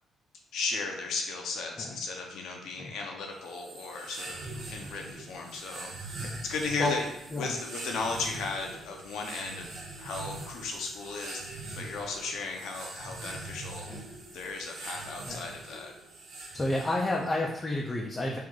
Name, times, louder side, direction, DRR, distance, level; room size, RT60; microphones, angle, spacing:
voice 1, 0.5-5.9 6.4-7.1 7.4-9.7 10.0-13.9 14.3-15.9, left 4 dB, 80° left, 1 dB, 0.6 m, -36 dB
sound 1, 3.4-17.3, right 2 dB, 80° right, 0.8 m, -43 dB
voice 2, 16.5-18.4, left 2 dB, 20° left, -2 dB, 0.4 m, -31 dB
3.1 x 2.5 x 3.7 m, 0.84 s
cardioid pair, 90°, 0 cm